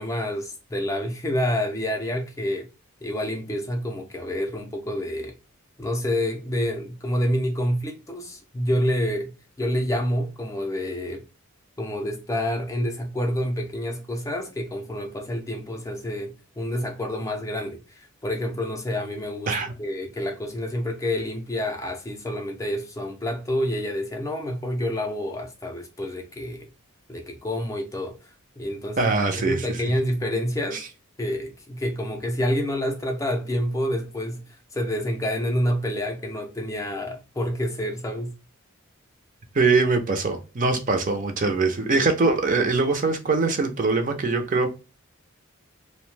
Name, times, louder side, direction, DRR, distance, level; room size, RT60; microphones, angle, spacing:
voice 1, 0.0-2.7 3.0-5.3 5.8-11.2 11.8-26.7 27.1-28.2 28.6-29.1 29.5-30.8 31.2-34.4 34.7-38.3, equal, 15° left, 0.4 m, -28 dB
voice 2, 29.0-29.8 30.7-30.8 39.5-44.7, right 3 dB, 40° right, 0.5 m, -22 dB
2.7 x 2.1 x 3.1 m
head